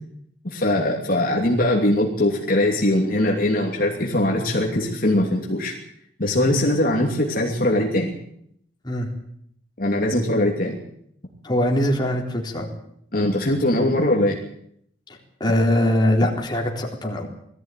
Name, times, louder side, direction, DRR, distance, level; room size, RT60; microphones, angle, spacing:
voice 1, 0.4-5.7 6.2-8.1 9.8-10.8 13.1-14.4, left 1 dB, 50° left, 0 dB, 2.9 m, -21 dB
voice 2, 11.4-12.7 15.4-17.3, left 1 dB, 25° left, 0 dB, 3.9 m, -22 dB
20.5 x 14.5 x 9.3 m, 0.71 s
head